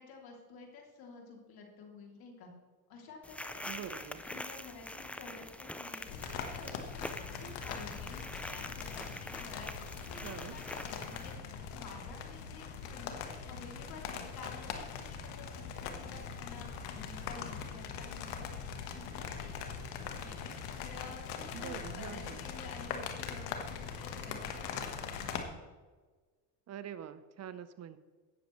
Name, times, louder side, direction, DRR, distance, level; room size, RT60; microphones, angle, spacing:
voice 1, 0.0-2.5 2.9-11.5 11.7-20.5 20.8-25.6, left 4 dB, 50° left, 0 dB, 3.0 m, -51 dB
sound 1, 3.2-11.3, left 1 dB, 5° left, 0.4 m, -45 dB
voice 2, 3.6-4.2 10.2-10.6 21.5-22.5 26.7-28.0, right 9 dB, 35° right, 13 dB, 0.8 m, -45 dB
sound 2, 6.1-25.4, left 6 dB, 80° left, 1.5 m, -41 dB
18.0 x 6.7 x 3.2 m, 1.4 s
supercardioid pair, 100°, 47 cm